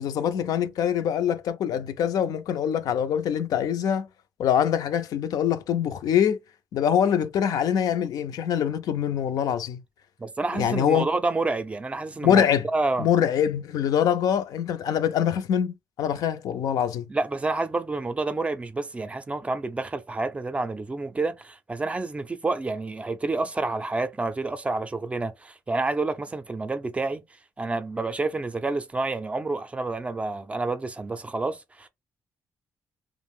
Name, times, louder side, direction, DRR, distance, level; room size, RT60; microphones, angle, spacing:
voice 1, 0.0-4.1 4.4-6.4 6.7-9.8 10.5-11.1 12.2-12.7 13.0-17.1, left 9 dB, 75° left, 0.4 m, -24 dB
voice 2, 10.2-12.4 12.7-13.1 17.1-27.2 27.6-31.9, right 3 dB, 20° right, 0.4 m, -29 dB
2.4 x 2.0 x 3.5 m
cardioid pair, 115°, 6 cm